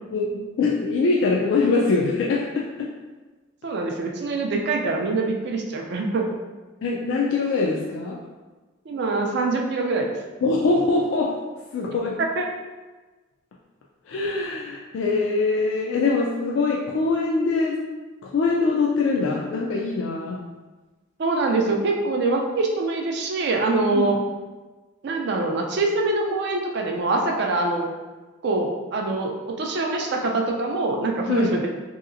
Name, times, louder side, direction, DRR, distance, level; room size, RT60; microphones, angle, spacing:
voice 1, 0.1-2.9 6.8-8.2 10.4-11.4 11.7-12.2 14.1-17.8 18.2-20.4 23.9-24.1 31.3-31.5, left 3 dB, 65° left, -2 dB, 0.3 m, -23 dB
voice 2, 3.6-6.3 8.9-10.2 12.2-12.5 21.2-24.2 25.0-27.9 28.4-31.7, right 3 dB, 50° right, 1 dB, 0.3 m, -24 dB
3.1 x 2.8 x 2.5 m, 1.3 s
head